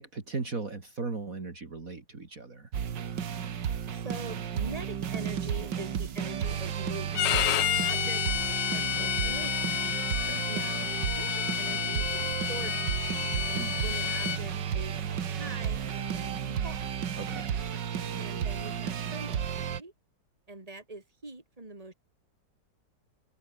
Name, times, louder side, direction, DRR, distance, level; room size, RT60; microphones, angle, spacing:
voice 1, 0.0-2.7 10.2-10.4 13.5-13.8 17.1-17.5, right 3 dB, 45° right, 3.2 m, -37 dB
sound 1, 2.7-19.8, right 8 dB, 70° right, 2.1 m, -33 dB
voice 2, 3.9-9.6 10.5-16.8 18.2-19.9 20.5-21.9, right 2 dB, 20° right, 3.7 m, -44 dB
Bowed string instrument, 7.1-14.4, left 12 dB, 70° left, 1.5 m, -30 dB
omnidirectional pair, 2.0 m